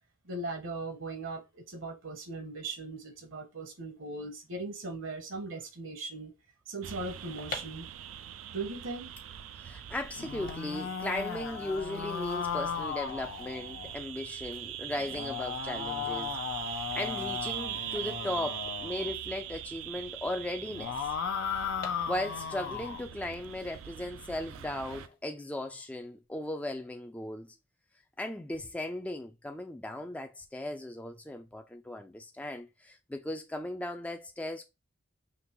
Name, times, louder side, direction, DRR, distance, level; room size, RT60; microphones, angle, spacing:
voice 1, 0.2-6.3 6.7-7.9 8.5-9.1, right 3 dB, 70° right, 1.0 m, -39 dB
sound 1, 6.8-25.1, right 11 dB, 90° right, 0.4 m, -42 dB
sound 2, 7.4-19.3 19.5-19.6 19.8-22.7 23.1-24.1 24.7-25.7 26.0-26.3, left 4 dB, 45° left, 0.9 m, -50 dB
voice 2, 9.5-16.4 16.7-21.1 22.0-27.6 28.2-34.6, left 1 dB, 5° left, 0.3 m, -37 dB
sound 3, 10.1-14.0 14.9-19.2 20.6-23.1, left 7 dB, 85° left, 0.5 m, -36 dB
5.2 x 2.9 x 2.9 m
head